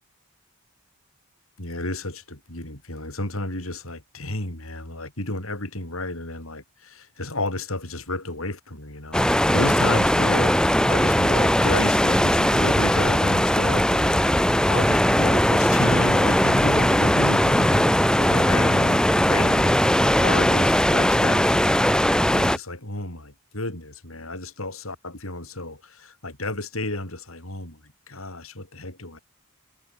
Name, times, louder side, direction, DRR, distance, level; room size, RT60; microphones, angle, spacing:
voice 1, 1.6-21.6 22.3-29.2, left 2 dB, 75° left, 6.6 m, -32 dB
sound 1, 9.1-22.6, equal, 5° left, 2.1 m, -19 dB
head